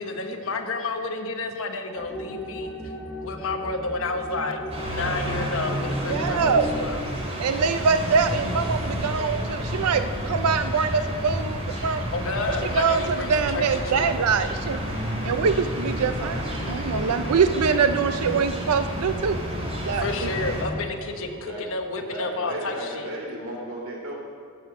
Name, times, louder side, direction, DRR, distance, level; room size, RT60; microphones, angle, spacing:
voice 1, 0.0-2.7 3.2-7.0 12.1-14.1 20.0-23.1, left 3 dB, 65° left, 4 dB, 1.1 m, -30 dB
sound 1, 2.0-7.1, left 1 dB, 5° left, 1.4 m, -35 dB
sound 2, 4.7-20.6, equal, 30° right, 2.5 m, -30 dB
voice 2, 6.1-6.7 7.4-12.1 12.7-14.8 15.2-19.4 19.8-20.1, right 5 dB, 85° right, 9 dB, 0.5 m, -24 dB
voice 3, 22.1-24.1, equal, 65° right, -2 dB, 2.9 m, -34 dB
14.5 x 6.0 x 6.1 m, 2.1 s
head